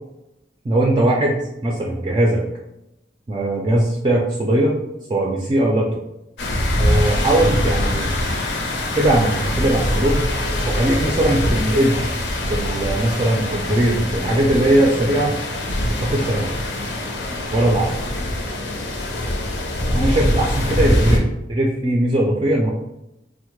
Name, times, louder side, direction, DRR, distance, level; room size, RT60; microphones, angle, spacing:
voice 1, 0.6-2.4 3.3-4.7 5.1-6.0 6.8-8.1 9.0-10.2 10.7-12.1 12.5-15.4 15.9-16.5 17.5-18.0 19.9-22.7, right 1 dB, 25° right, -2 dB, 0.3 m, -19 dB
sound 1, 6.4-21.2, left 1 dB, 80° left, 0.6 m, -23 dB
3.5 x 2.1 x 3.0 m, 0.89 s
head